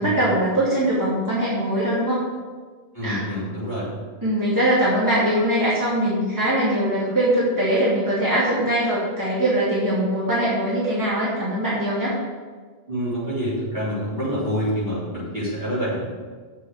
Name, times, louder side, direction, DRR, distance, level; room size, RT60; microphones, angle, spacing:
voice 1, 0.0-2.2 3.0-3.2 4.2-12.2, right 1 dB, 15° right, -8 dB, 2.5 m, -22 dB
voice 2, 2.9-3.9 12.9-16.2, equal, 40° right, -11 dB, 3.8 m, -27 dB
7.8 x 6.3 x 7.9 m, 1.5 s
omnidirectional pair, 1.2 m